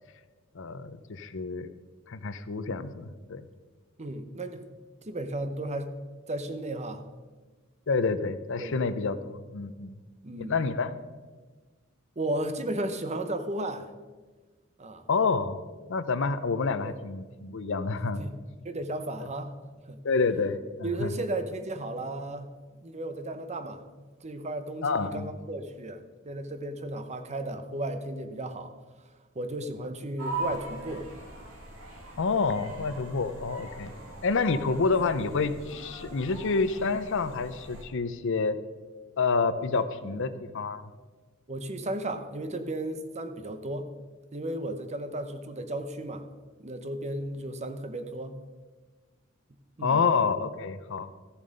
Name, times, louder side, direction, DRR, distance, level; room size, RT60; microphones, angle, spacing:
voice 1, 0.5-1.7 2.1-3.4 7.9-9.9 10.4-10.9 15.1-15.6 15.9-18.2 20.0-21.1 24.8-25.3 32.2-33.9 34.2-38.6 39.2-40.8 49.8-51.2, left 4 dB, 65° left, 13 dB, 0.6 m, -28 dB
voice 2, 4.0-4.7 5.0-5.9 6.3-7.1 8.6-8.8 10.2-10.6 12.2-13.9 14.8-15.0 16.8-17.0 18.2-18.4 18.6-19.6 19.8-20.0 20.8-22.5 22.8-28.7 29.3-31.1 39.8-39.9 41.5-43.9 44.3-46.2 46.6-48.4 49.8-50.0, right 1 dB, 35° right, 8 dB, 0.9 m, -34 dB
sound 1, 30.2-37.8, right 2 dB, 70° right, 2.5 m, -41 dB
14.0 x 7.2 x 5.3 m, 1.4 s
head